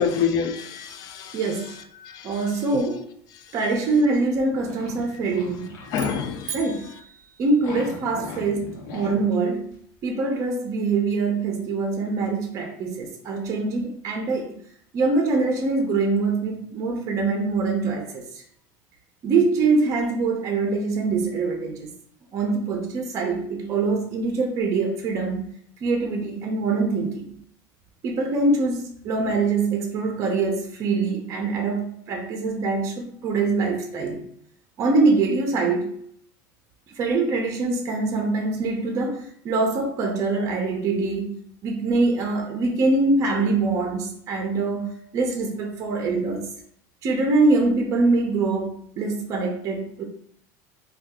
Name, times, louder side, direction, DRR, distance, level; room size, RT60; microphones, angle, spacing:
voice 1, 0.0-1.4 2.0-2.4 5.9-6.6, left 6 dB, 45° left, 8 dB, 0.4 m, -26 dB
voice 2, 1.3-1.7 2.2-3.1 3.5-5.7 6.5-6.9 7.4-9.7 10.0-14.6 14.9-18.4 19.2-21.9 22.3-25.5 25.8-27.3 28.0-34.2 34.8-35.9 36.9-41.3 41.6-46.5 47.0-50.0, right 3 dB, 35° right, 3 dB, 0.5 m, -24 dB
sound 1, 3.9-6.0 6.4-6.6 7.5-9.3 9.7-9.8, left 3 dB, 80° left, 0.9 m, -40 dB
sound 2, 5.9-8.2, right 7 dB, 85° right, 0.4 m, -40 dB
2.7 x 2.3 x 3.4 m, 0.67 s
cardioid pair, 150°, 9 cm